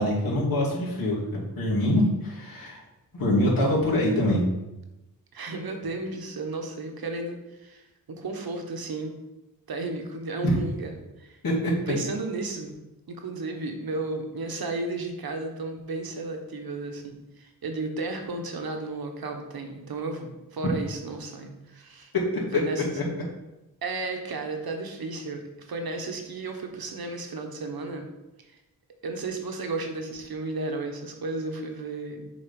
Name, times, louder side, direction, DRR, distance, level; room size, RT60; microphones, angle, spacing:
voice 1, 0.0-2.8 3.1-4.4 10.4-10.6 11.4-11.7 22.5-22.6, left 1 dB, 65° left, -5 dB, 2.7 m, -24 dB
voice 2, 5.3-9.2 9.7-11.4 11.9-12.8 13.1-22.1 22.5-22.8 23.8-28.1 29.0-32.3, right 3 dB, 70° right, 4 dB, 1.2 m, -33 dB
7.3 x 3.9 x 5.2 m, 0.98 s
wide cardioid pair, 85°, 37 cm